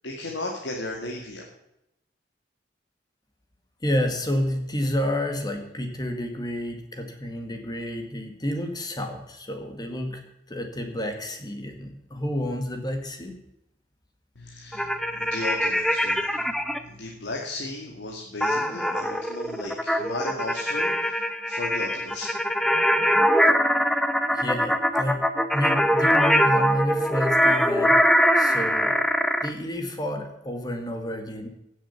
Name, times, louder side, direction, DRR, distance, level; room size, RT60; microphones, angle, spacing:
voice 1, 0.0-1.4 14.4-22.3, left 2 dB, 80° left, 0 dB, 2.3 m, -35 dB
voice 2, 3.8-10.2 10.5-13.4 24.3-25.3 25.5-28.1 28.4-29.0 29.4-31.5, equal, 25° left, 5 dB, 2.0 m, -30 dB
sound 1, 14.7-16.8 18.4-29.5, equal, ahead, 0.9 m, -22 dB
17.0 x 7.6 x 7.2 m, 0.84 s
head